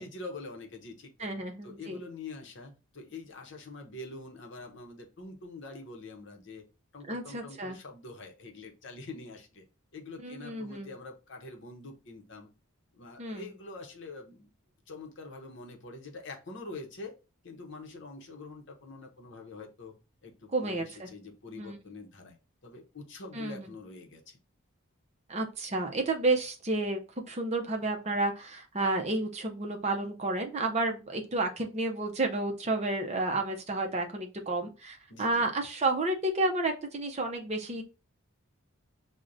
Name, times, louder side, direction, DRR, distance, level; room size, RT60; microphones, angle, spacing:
voice 1, 0.0-1.3 1.6-6.6 6.9-9.6 9.9-12.5 12.9-14.5 14.9-17.1 17.4-19.9 20.2-22.4 22.6-24.4 35.1-35.4, left 3 dB, 55° left, 3 dB, 0.7 m, -45 dB
voice 2, 1.2-2.0 7.1-7.8 10.2-10.9 13.2-13.5 20.5-21.1 21.5-21.8 23.3-23.7 25.3-27.0 27.3-37.8, right 2 dB, 30° right, 3 dB, 0.5 m, -31 dB
6.1 x 2.1 x 2.5 m, 0.31 s
head